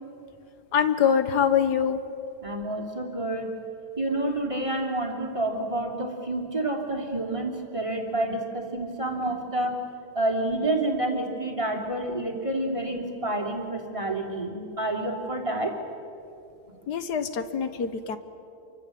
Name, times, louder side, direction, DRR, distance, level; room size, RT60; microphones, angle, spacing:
voice 1, 0.7-2.0 16.9-18.2, left 7 dB, 80° left, 10 dB, 1.9 m, -24 dB
voice 2, 2.4-3.5 4.0-9.8 10.1-15.7, right 1 dB, 20° right, 0 dB, 3.2 m, -29 dB
28.0 x 24.5 x 7.7 m, 2.7 s
omnidirectional pair, 1.7 m